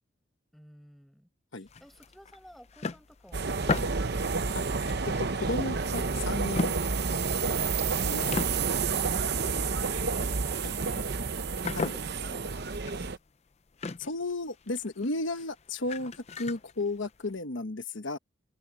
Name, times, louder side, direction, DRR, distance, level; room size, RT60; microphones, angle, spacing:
voice 1, 0.5-1.3 1.8-4.6 8.0-8.1 9.3-10.6 11.8-13.1, equal, ahead, 5.2 m, -55 dB
sound 1, 1.7-6.1 6.5-8.0 8.3-17.4, left 3 dB, 35° left, 0.5 m, -38 dB
sound 2, 3.3-13.2, right 4 dB, 55° right, 0.8 m, -30 dB
voice 2, 5.2-6.7 8.0-8.6 10.6-10.7 11.7-11.9 14.0-18.2, left 2 dB, 70° left, 1.2 m, -34 dB
open air
head